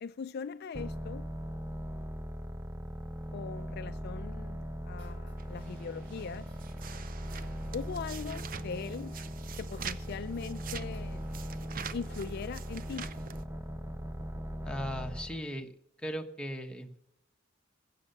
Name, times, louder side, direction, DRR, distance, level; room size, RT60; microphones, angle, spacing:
voice 1, 0.0-1.3 3.3-6.5 7.7-9.1 9.6-11.2 11.9-13.1, left 5 dB, 55° left, 0.4 m, -40 dB
basscapes Phisicaldrone, 0.7-15.5, equal, 15° right, 0.7 m, -40 dB
sound 1, 5.0-13.0, equal, 65° right, 5.4 m, -59 dB
sound 2, 5.4-13.4, right 6 dB, 45° right, 0.6 m, -45 dB
voice 2, 14.6-15.7 16.0-17.0, equal, 5° left, 1.1 m, -38 dB
16.0 x 6.7 x 6.7 m
head